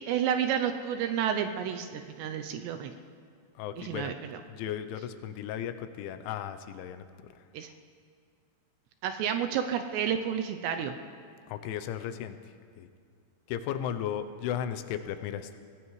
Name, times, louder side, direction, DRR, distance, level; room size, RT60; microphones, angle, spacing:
voice 1, 0.1-2.9 3.8-4.4 7.5-7.7 9.0-10.9, right 8 dB, 80° right, 6 dB, 2.6 m, -30 dB
voice 2, 3.6-4.1 4.5-7.0 11.5-12.4 12.8-12.9 13.5-15.5, left 9 dB, 90° left, 9 dB, 3.2 m, -35 dB
23.5 x 17.5 x 3.2 m, 2.2 s
omnidirectional pair, 5.3 m